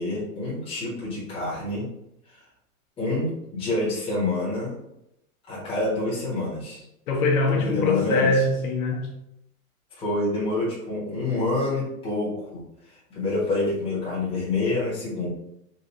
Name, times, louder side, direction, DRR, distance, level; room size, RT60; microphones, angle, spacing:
voice 1, 0.0-1.9 3.0-4.8 5.5-6.8 7.5-8.3 10.0-12.6 13.1-15.3, left 2 dB, 15° left, -7 dB, 1.1 m, -27 dB
voice 2, 7.1-9.1, left 3 dB, 90° left, 0 dB, 1.1 m, -23 dB
4.0 x 2.5 x 2.9 m, 0.81 s
supercardioid pair, 155°, 42 cm